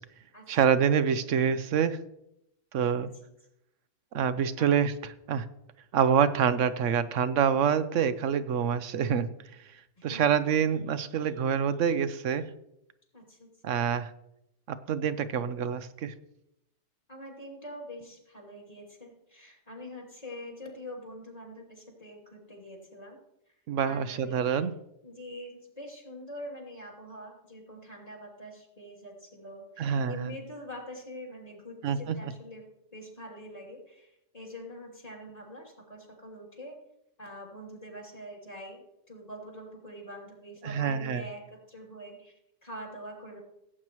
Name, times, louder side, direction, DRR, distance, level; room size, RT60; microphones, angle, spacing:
voice 1, 0.5-2.0 2.7-3.1 4.1-4.9 5.3-5.5 5.9-9.3 10.0-12.5 13.6-14.1 14.7-16.1 23.7-24.7 29.8-30.3 31.8-32.2 40.6-41.2, right 7 dB, 80° right, 12 dB, 1.1 m, -26 dB
voice 2, 13.1-13.8 17.1-23.2 23.8-24.6 25.0-32.6 32.9-36.8 37.2-43.4, equal, 30° left, -2 dB, 3.0 m, -44 dB
17.0 x 8.8 x 3.0 m, 0.82 s
omnidirectional pair, 1.3 m